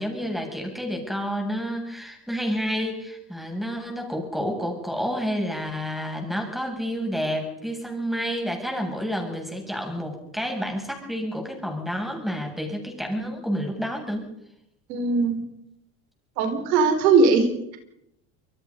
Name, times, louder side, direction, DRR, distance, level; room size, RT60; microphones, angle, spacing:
voice 1, 0.0-14.2, equal, ahead, 2 dB, 7.9 m, -29 dB
voice 2, 14.9-15.4 16.4-17.8, right 4 dB, 90° right, 6 dB, 5.0 m, -20 dB
27.5 x 22.5 x 5.6 m, 0.79 s
supercardioid pair, 115°, 49 cm